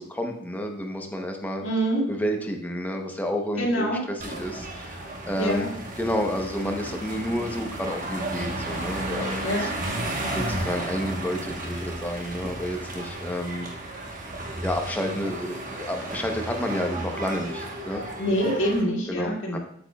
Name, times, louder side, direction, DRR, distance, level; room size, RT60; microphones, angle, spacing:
voice 1, 0.0-1.6 2.1-3.9 4.2-5.7 6.0-9.4 10.3-13.7 14.6-18.0 19.1-19.6, equal, 10° left, 3 dB, 0.7 m, -30 dB
voice 2, 1.6-2.0 3.6-4.0 5.4-5.7 9.4-9.7 18.2-19.6, equal, 70° left, -3 dB, 2.0 m, -25 dB
sound 1, 4.2-18.8, right 1 dB, 40° right, 1.1 m, -33 dB
8.1 x 7.2 x 2.2 m, 0.68 s
head